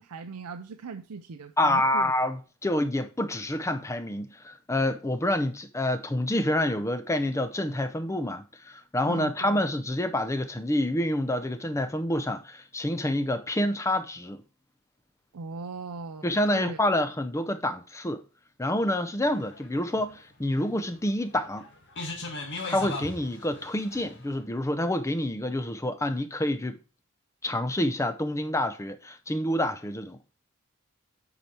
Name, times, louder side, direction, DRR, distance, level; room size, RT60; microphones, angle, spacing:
voice 1, 0.0-2.1 9.0-9.6 15.3-16.9, right 4 dB, 85° right, 0.5 m, -39 dB
voice 2, 1.6-14.4 16.2-18.2 18.6-21.7 22.7-26.8 27.4-30.2, left 1 dB, 15° left, 0.6 m, -28 dB
sound 1, 19.2-24.3, left 3 dB, 55° left, 1.7 m, -38 dB
8.3 x 4.7 x 4.3 m
head